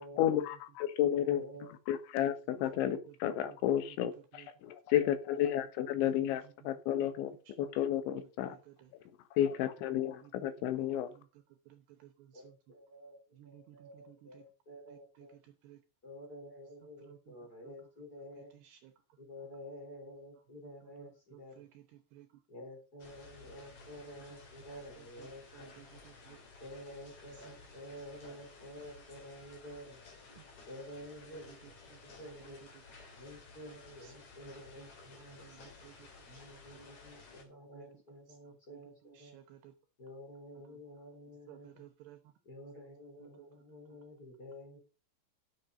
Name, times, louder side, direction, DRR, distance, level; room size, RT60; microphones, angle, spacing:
voice 1, 0.2-1.4 1.9-8.6 9.3-11.1, left 11 dB, 80° left, 11 dB, 3.6 m, -32 dB
voice 2, 1.1-1.7 10.5-10.6 12.3-15.3 16.0-18.5 19.2-21.6 22.5-25.8 26.6-30.0 30.7-31.7 32.0-32.6 33.2-35.9 36.3-39.4 40.0-41.8 42.4-44.8, equal, 20° left, 1 dB, 3.6 m, -50 dB
voice 3, 6.0-7.1 7.5-7.9 8.2-8.9 9.9-12.6 13.3-14.4 14.9-15.8 17.0-17.8 18.5-19.2 20.6-22.4 24.1-24.2 25.0-26.4 27.3-27.6 28.3-28.4 28.8-28.9 30.3-30.4 31.3-32.0 32.4-32.8 34.0-34.1 34.4-34.9 35.1-37.0 37.5-38.0 38.3-39.7 40.6-40.8 41.5-42.3 43.2-43.5, right 13 dB, 75° right, 7 dB, 2.8 m, -58 dB
sound 1, 23.0-37.4, left 4 dB, 45° left, 3.5 m, -55 dB
10.5 x 7.5 x 5.2 m, 0.32 s
omnidirectional pair, 5.3 m